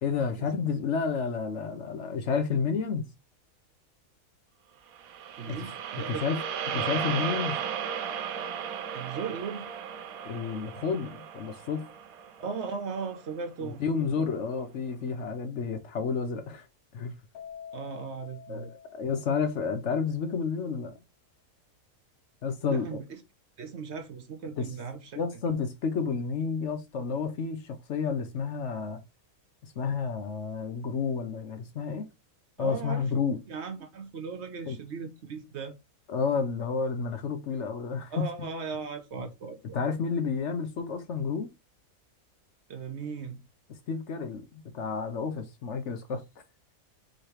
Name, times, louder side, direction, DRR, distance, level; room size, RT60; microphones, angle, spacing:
voice 1, 0.0-3.1 5.5-5.6 6.1-6.4 6.7-7.6 10.2-11.9 13.6-16.7 16.9-17.1 18.5-20.9 22.4-23.0 24.6-24.7 25.1-29.0 29.6-32.1 32.6-33.4 34.7-34.8 36.1-38.5 39.7-41.5 43.9-46.2, left 5 dB, 60° left, 0.9 m, -30 dB
sound 1, 5.0-13.3, right 8 dB, 85° right, 1.1 m, -35 dB
voice 2, 5.4-6.3 6.7-6.8 8.9-9.7 12.4-13.8 14.2-14.3 17.7-18.7 22.6-23.2 23.6-25.2 32.6-33.1 33.5-35.7 38.1-39.8 42.7-43.4, right 5 dB, 60° right, 0.9 m, -37 dB
Keyboard (musical), 17.3-19.8, left 7 dB, 80° left, 1.1 m, -47 dB
4.9 x 3.1 x 3.0 m
omnidirectional pair, 1.5 m